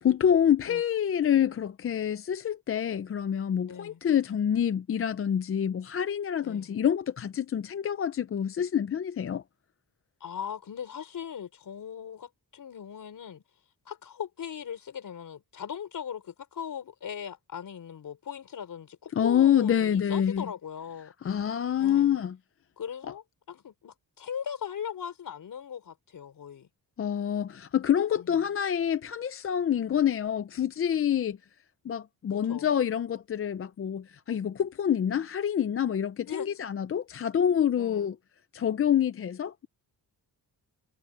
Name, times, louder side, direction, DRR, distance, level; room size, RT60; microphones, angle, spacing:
voice 1, 0.0-9.4 19.2-20.5 21.2-22.3 27.0-31.4 31.8-38.2 38.5-39.7, left 9 dB, 35° left, 0.5 m, -27 dB
voice 2, 3.6-4.0 6.4-6.8 10.2-13.4 13.8-21.1 21.8-22.1 22.8-26.7 28.2-28.4 32.3-32.7 36.3-36.5 37.8-38.1, left 8 dB, 55° left, 4.9 m, -39 dB
wide cardioid pair, 170°, 40 cm